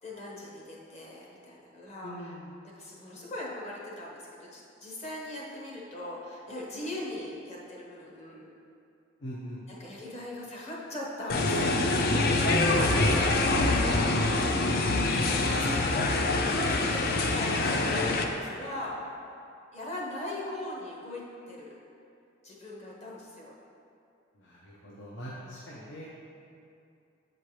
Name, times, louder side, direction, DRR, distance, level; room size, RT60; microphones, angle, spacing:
voice 1, 0.0-2.3 2.8-8.5 9.8-14.4 15.0-19.0 19.7-21.8 22.4-23.5, left 1 dB, 35° left, -4 dB, 1.0 m, -40 dB
voice 2, 2.0-2.5 9.2-9.6 12.7-13.2 24.3-26.1, equal, 70° left, -6 dB, 0.8 m, -42 dB
sound 1, 11.3-18.2, left 2 dB, 50° left, 0.4 m, -25 dB
7.7 x 4.4 x 3.2 m, 2.6 s
head